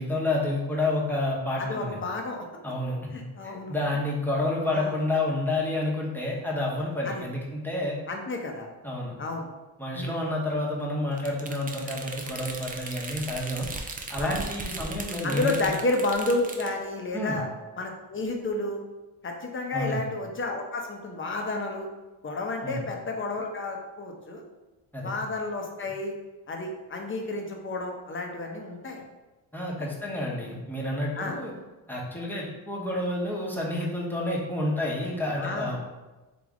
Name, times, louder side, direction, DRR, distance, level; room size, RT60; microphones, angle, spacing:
voice 1, 0.0-2.0 2.6-8.0 8.8-9.2 9.8-13.7 14.1-15.7 17.1-17.4 19.7-20.0 22.6-22.8 24.9-25.2 29.5-31.5 31.9-35.8, left 1 dB, 5° left, -4 dB, 1.1 m, -29 dB
voice 2, 1.6-2.5 3.1-3.8 4.7-4.9 7.0-7.2 8.1-8.7 9.2-9.5 9.9-10.1 14.2-14.3 15.2-17.5 17.8-18.8 19.2-21.9 22.2-24.4 25.0-26.1 26.5-29.0 29.8-29.9 31.2-31.4 35.4-35.8, left 2 dB, 30° left, 2 dB, 0.8 m, -31 dB
sound 1, 11.2-16.7, right 3 dB, 20° right, 0.5 m, -37 dB
3.4 x 2.9 x 3.7 m, 1.1 s
supercardioid pair, 65°, 42 cm